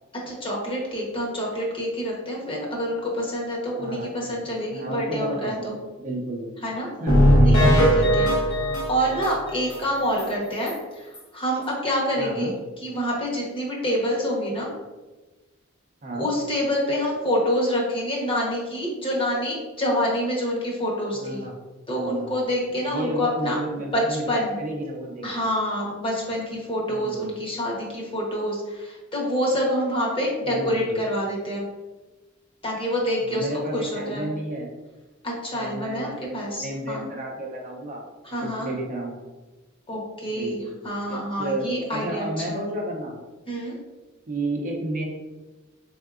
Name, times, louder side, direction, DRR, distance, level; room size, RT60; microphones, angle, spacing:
voice 1, 0.3-5.8 6.6-6.9 7.4-12.5 12.8-14.7 16.1-21.4 21.9-23.6 23.9-24.0 24.3-24.5 25.2-31.6 32.6-33.5 33.7-34.3 35.2-37.0 38.2-38.7 39.9-42.7 43.5-43.7, equal, 25° left, -3 dB, 0.9 m, -27 dB
voice 2, 3.8-4.3 4.7-5.7 6.0-6.5 7.0-8.0 12.2-12.5 16.0-16.3 21.1-21.5 21.9-22.3 22.9-25.5 26.9-27.2 30.5-31.0 33.2-34.7 35.5-38.0 38.3-39.2 40.3-40.7 41.1-43.2 44.3-45.0, right 1 dB, 40° right, 0 dB, 0.6 m, -32 dB
sound 1, 7.1-9.8 10.2-10.3 10.7-10.8 11.1-11.2, equal, 85° left, 1.0 m, -19 dB
3.8 x 3.5 x 2.4 m, 1.2 s
head